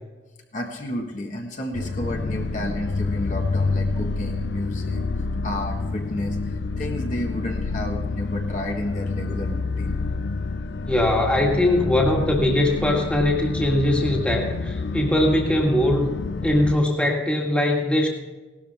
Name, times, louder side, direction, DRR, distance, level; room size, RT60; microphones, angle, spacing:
voice 1, 0.5-9.9 14.9-15.0, left 1 dB, 45° left, 1 dB, 1.5 m, -31 dB
sound 1, 1.7-16.7, left 3 dB, 70° left, 0.5 m, -28 dB
voice 2, 10.9-16.1 16.4-18.1, left 1 dB, 5° left, -1 dB, 1.9 m, -21 dB
17.5 x 12.5 x 3.5 m, 1.2 s
head